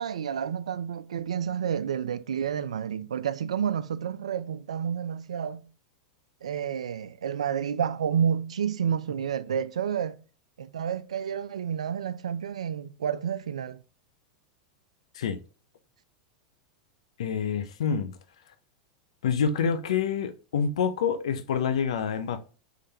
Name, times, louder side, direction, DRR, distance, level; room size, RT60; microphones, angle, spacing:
voice 1, 0.0-5.7 6.4-10.2 10.6-13.8, right 8 dB, 85° right, 0.4 m, -30 dB
voice 2, 17.2-18.1 19.2-22.4, left 7 dB, 80° left, 0.5 m, -27 dB
3.8 x 3.2 x 2.8 m
hypercardioid pair, 105°, 3 cm